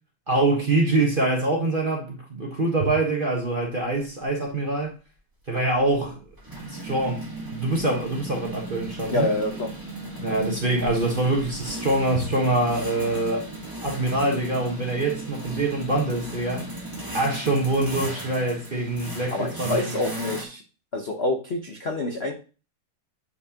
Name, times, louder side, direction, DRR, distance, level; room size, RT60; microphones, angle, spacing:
voice 1, 0.3-4.9 5.5-6.2 6.7-7.2 7.5-9.3 10.2-13.5 13.8-16.7 17.1-20.0, right 2 dB, 30° right, 1.1 m, -24 dB
sound 1, 5.5-20.5, right 1 dB, 10° right, 1.5 m, -36 dB
voice 2, 9.1-9.7 19.3-20.6 20.9-22.3, left 2 dB, 45° left, 0.8 m, -27 dB
9.0 x 4.4 x 2.9 m
omnidirectional pair, 2.4 m